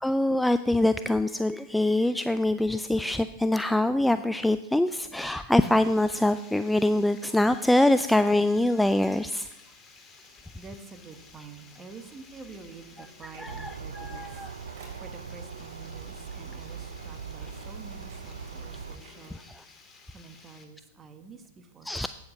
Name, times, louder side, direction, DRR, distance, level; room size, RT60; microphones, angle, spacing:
voice 1, 0.0-9.5 13.2-14.5 17.4-17.5 19.3-19.6 21.8-22.1, left 1 dB, 5° left, 12 dB, 0.3 m, -24 dB
Water, 5.6-20.6, left 4 dB, 20° left, 1.9 m, -54 dB
Printer, 10.2-19.4, right 4 dB, 55° right, 3.6 m, -52 dB
voice 2, 10.5-14.5 15.0-19.4 20.1-21.9, right 4 dB, 25° right, 8 dB, 1.3 m, -48 dB
sound 1, 13.5-19.0, right 6 dB, 80° right, 0.6 m, -41 dB
8.9 x 7.8 x 6.5 m, 0.95 s
hypercardioid pair, 100°, 0 cm